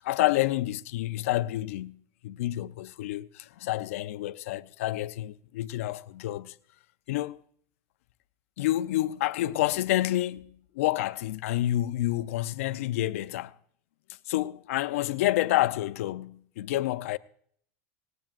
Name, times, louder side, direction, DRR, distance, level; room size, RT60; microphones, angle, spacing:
voice 1, 0.0-6.6 7.1-7.4 8.6-13.5 14.3-17.2, left 15 dB, 85° left, 0.6 m, -29 dB
19.0 x 18.0 x 2.6 m
supercardioid pair, 165°, 7 cm